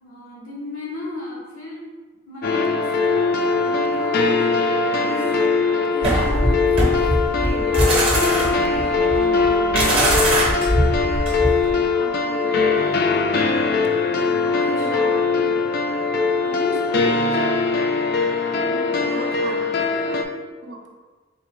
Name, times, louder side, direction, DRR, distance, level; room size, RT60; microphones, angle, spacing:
voice 1, 0.0-1.9 2.3-5.3 5.9-6.4 7.3-7.9 8.3-10.4 14.3-15.6 16.4-17.5 18.6-19.2 19.7-20.0, left 1 dB, 85° left, -4 dB, 0.9 m, -35 dB
sound 1, 2.4-20.2, left 4 dB, 50° left, 0.3 m, -21 dB
sound 2, 6.0-11.7, right 1 dB, 30° right, 0.7 m, -21 dB
voice 2, 7.7-8.1 11.7-13.3 14.6-15.3 19.0-20.8, right 2 dB, 60° right, 0 dB, 0.6 m, -36 dB
3.7 x 3.3 x 3.1 m, 1.4 s
head